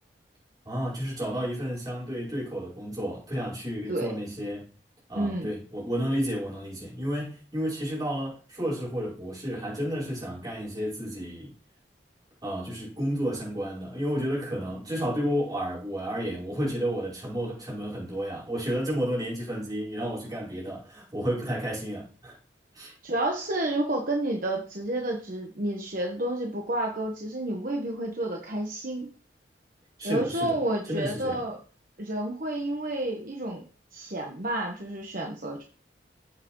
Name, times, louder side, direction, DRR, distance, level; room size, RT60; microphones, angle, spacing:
voice 1, 0.6-4.7 5.1-11.5 12.4-22.4 22.7-23.0 30.0-30.6 30.9-31.4, equal, 20° right, 5.1 m, -31 dB
voice 2, 5.1-5.5 23.0-29.1 30.0-31.6 32.0-33.6 33.9-35.6, right 1 dB, 50° right, 1.2 m, -30 dB
9.8 x 7.7 x 3.1 m
head